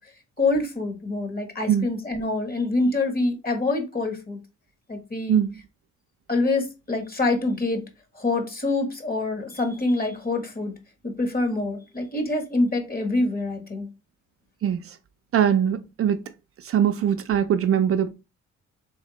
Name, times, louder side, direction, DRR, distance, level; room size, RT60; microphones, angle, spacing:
voice 1, 0.4-4.4 4.9-5.4 6.3-7.8 8.1-10.7 11.0-13.9, left 2 dB, 30° left, 1.4 m, -25 dB
voice 2, 15.3-16.2 16.6-18.1, right 9 dB, 50° right, 0.4 m, -21 dB
3.6 x 3.2 x 4.0 m
cardioid pair, 90°, 30 cm